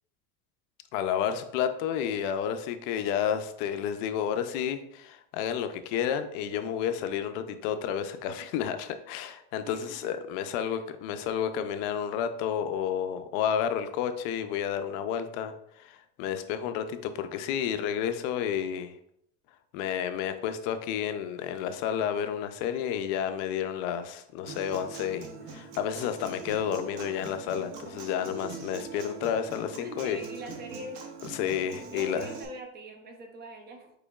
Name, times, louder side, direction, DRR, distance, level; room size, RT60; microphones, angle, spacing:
voice 1, 0.9-19.0 19.7-30.2 31.3-32.3, left 8 dB, 55° left, 9 dB, 0.5 m, -31 dB
voice 2, 9.6-10.1 10.6-10.8 29.8-31.0 31.9-33.9, right 1 dB, 25° right, 5 dB, 0.5 m, -43 dB
Human voice / Acoustic guitar, 24.5-32.4, right 5 dB, 60° right, 1.0 m, -42 dB
5.0 x 4.5 x 2.3 m, 0.75 s
supercardioid pair, 140°, 39 cm